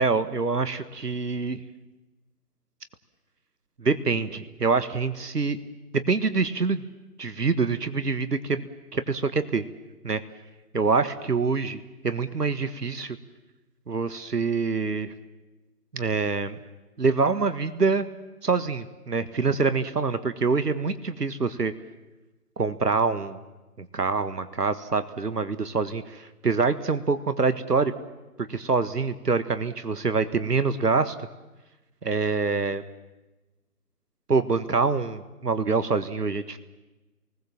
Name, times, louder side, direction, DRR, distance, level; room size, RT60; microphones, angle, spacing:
voice 1, 0.0-1.6 3.8-5.6 5.9-6.8 7.2-9.6 10.0-10.2 10.7-13.2 13.9-15.1 15.9-16.6 17.0-18.1 18.4-21.7 22.6-23.4 23.8-27.9 28.4-31.1 32.0-32.8 34.3-36.6, right 4 dB, 80° right, 12 dB, 1.6 m, -25 dB
29.0 x 20.0 x 7.3 m, 1.1 s
figure-of-eight pair, 150°, 47 cm